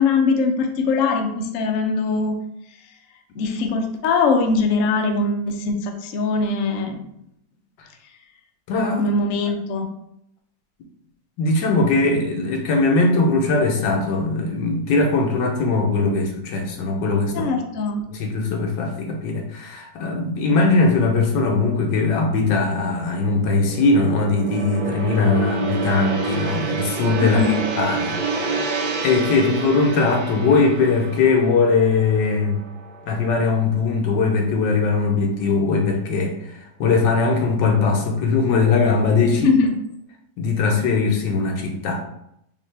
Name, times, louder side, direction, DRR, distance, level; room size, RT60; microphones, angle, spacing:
voice 1, 0.0-2.4 3.3-7.0 8.9-9.9 17.3-18.0 27.2-27.7 39.3-39.7, left 4 dB, 60° left, 3 dB, 0.8 m, -21 dB
voice 2, 8.7-9.0 11.4-17.5 18.2-27.5 27.8-28.5 29.0-32.6 33.1-39.5 40.4-42.0, left 3 dB, 85° left, 2 dB, 1.5 m, -20 dB
Gong, 21.7-34.0 34.3-34.6, right 4 dB, 85° right, 1.4 m, -29 dB
5.3 x 2.8 x 3.3 m, 0.77 s
omnidirectional pair, 1.9 m